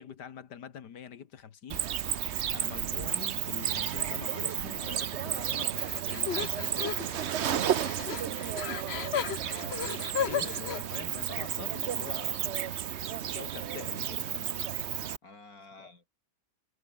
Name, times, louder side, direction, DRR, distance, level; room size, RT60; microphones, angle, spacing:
voice 1, 0.0-2.3 2.5-7.3 9.6-12.6 13.3-14.5 15.8-15.9, left 8 dB, 85° left, 2.1 m, -45 dB
Cricket, 1.7-15.2, right 9 dB, 50° right, 0.9 m, -32 dB
Female Running Scared, 5.8-10.8, left 7 dB, 45° left, 1.1 m, -35 dB
voice 2, 8.2-8.5 9.1-9.6 13.6-14.4 15.2-16.1, left 3 dB, 60° left, 5.2 m, -53 dB
omnidirectional pair, 1.7 m